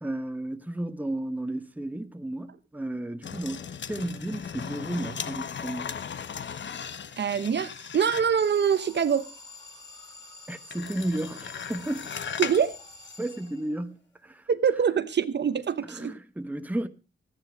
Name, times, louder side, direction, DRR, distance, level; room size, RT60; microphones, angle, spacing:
voice 1, 0.0-5.9 10.5-12.1 13.2-14.5 15.8-16.9, right 1 dB, 5° right, 1.0 m, -33 dB
sound 1, 3.2-8.4 10.7-12.7 13.0-13.1, left 7 dB, 60° left, 0.9 m, -37 dB
voice 2, 7.2-9.3 12.4-12.7 14.5-16.1, right 7 dB, 55° right, 0.8 m, -24 dB
Alarm, 8.4-13.9, left 3 dB, 15° left, 4.0 m, -47 dB
13.5 x 10.0 x 4.9 m
cardioid pair, 95°, 21 cm